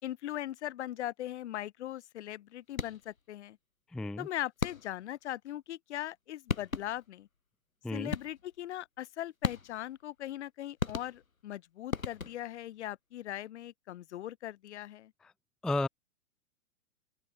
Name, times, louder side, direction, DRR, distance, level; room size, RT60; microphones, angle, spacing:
voice 1, 0.0-3.6 4.2-7.3 7.9-15.1, left 13 dB, 55° left, 3.7 m, -40 dB
sound 1, 2.7-3.2 4.6-5.1 6.1-6.2 6.5-7.1 8.1-8.6 9.4-10.0 10.8-11.5 11.9-12.6, left 4 dB, 85° left, 2.8 m, -36 dB
voice 2, 3.9-4.3 7.8-8.1 15.6-15.9, left 2 dB, ahead, 0.5 m, -32 dB
open air
figure-of-eight pair, 105°, 40 cm